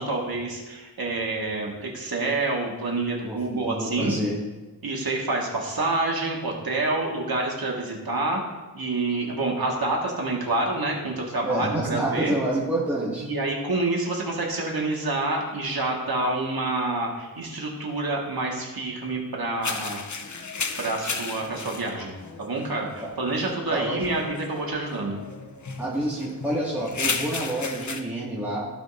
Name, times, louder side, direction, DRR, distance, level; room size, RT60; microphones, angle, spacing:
voice 1, 0.0-4.1 4.8-8.4 8.7-12.4 13.2-20.0 20.8-22.1 22.4-25.2, right 2 dB, 70° right, -1 dB, 1.7 m, -27 dB
voice 2, 3.2-4.4 11.4-13.3 23.7-24.0 25.8-28.7, right 1 dB, 5° right, -8 dB, 1.9 m, -28 dB
sound 1, 19.6-28.0, left 4 dB, 50° left, 0.7 m, -34 dB
15.0 x 5.2 x 2.6 m, 1.2 s
wide cardioid pair, 75°, 38 cm